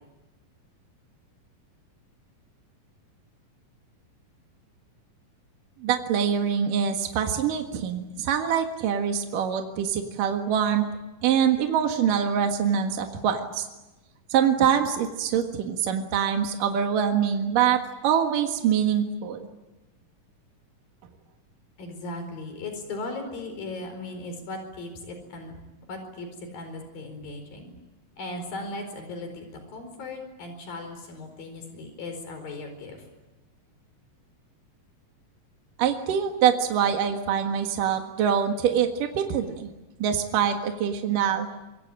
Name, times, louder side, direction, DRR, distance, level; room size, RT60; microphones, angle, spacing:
voice 1, 5.8-10.9 11.2-13.7 14.3-19.4 35.8-39.7 40.0-41.5, right 8 dB, 75° right, 4 dB, 3.3 m, -24 dB
voice 2, 21.8-25.5 25.9-27.7 28.2-33.0, left 2 dB, 90° left, 6 dB, 6.2 m, -37 dB
26.5 x 23.0 x 8.9 m, 1.1 s
omnidirectional pair, 4.0 m